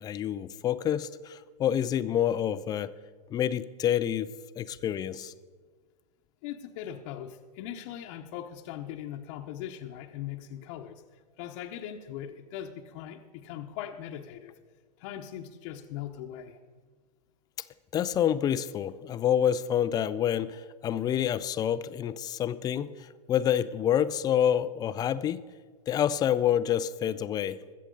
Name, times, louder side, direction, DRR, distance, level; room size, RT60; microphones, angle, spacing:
voice 1, 0.0-2.9 3.3-4.3 4.6-5.3 17.9-25.4 25.9-27.6, left 10 dB, 20° left, 14 dB, 0.4 m, -28 dB
voice 2, 6.4-14.5 15.0-16.6, left 10 dB, 45° left, 3 dB, 1.0 m, -40 dB
22.5 x 7.6 x 3.9 m, 1.5 s
hypercardioid pair, 120°, 21 cm